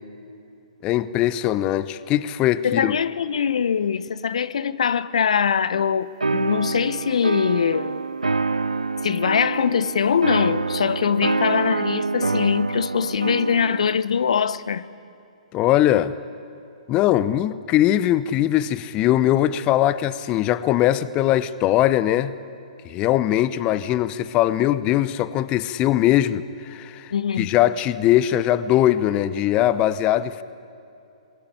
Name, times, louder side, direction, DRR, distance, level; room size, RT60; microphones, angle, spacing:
voice 1, 0.8-3.0 15.5-16.1 16.9-22.3 22.8-27.1 27.4-30.4, left 13 dB, 25° left, 0.8 m, -21 dB
voice 2, 2.6-8.0 9.0-14.8 27.1-27.5, left 7 dB, 65° left, 0.9 m, -22 dB
sound 1, 6.2-14.0, right 4 dB, 90° right, 0.7 m, -26 dB
26.0 x 20.5 x 10.0 m
figure-of-eight pair, 125°, 4 cm